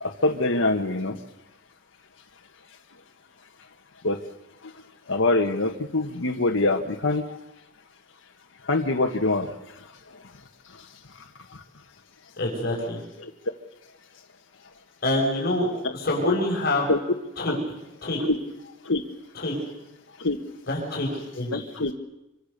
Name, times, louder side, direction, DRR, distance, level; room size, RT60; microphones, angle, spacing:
voice 1, 0.0-1.2 4.0-4.2 5.1-7.2 8.7-9.5 13.2-13.3 15.8-15.9 16.9-17.0 17.5-17.6 18.2-18.4 18.9-19.0 20.2-20.4 21.5-21.9, left 2 dB, 80° left, 2 dB, 1.6 m, -24 dB
voice 2, 12.4-13.0 15.0-16.8 17.4-18.2 19.3-19.5 20.7-21.1 21.3-21.7, left 1 dB, 50° left, -2 dB, 6.3 m, -26 dB
26.0 x 24.0 x 6.8 m, 0.92 s
head